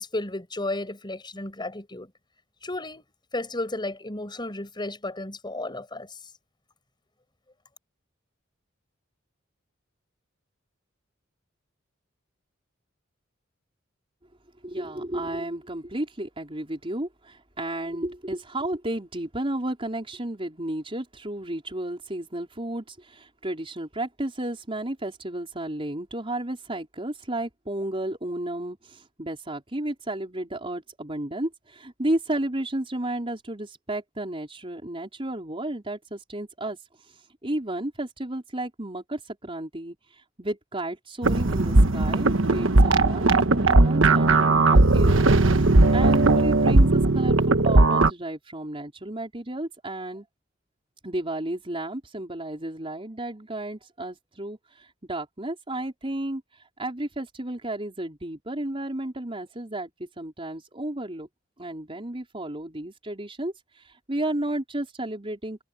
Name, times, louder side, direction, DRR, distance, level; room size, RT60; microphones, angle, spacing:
voice 1, 0.0-2.1 2.6-3.0 3.3-6.2, left 2 dB, 25° left, 5.9 m, -33 dB
voice 2, 14.6-36.8 37.4-45.2 45.9-50.2 51.0-61.3 61.6-65.6, right 1 dB, 30° right, 4.5 m, -32 dB
sound 1, 41.2-48.1, right 2 dB, 80° right, 1.3 m, -18 dB
head